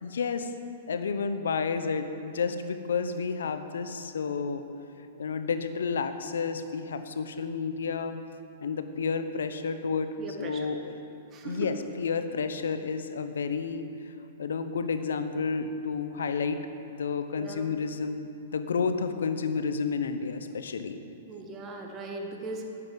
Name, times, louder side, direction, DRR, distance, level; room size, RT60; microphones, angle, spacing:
voice 1, 0.0-0.5 0.9-4.6 5.2-8.2 8.6-10.1 10.4-11.1 11.4-13.9 14.4-16.6 16.9-21.0, left 5 dB, 85° left, 9 dB, 0.8 m, -31 dB
voice 2, 10.2-10.7 11.3-11.7 17.4-17.7 21.3-22.7, right 3 dB, 25° right, 2 dB, 1.4 m, -39 dB
9.5 x 7.7 x 7.2 m, 2.8 s
hypercardioid pair, 130°, 0 cm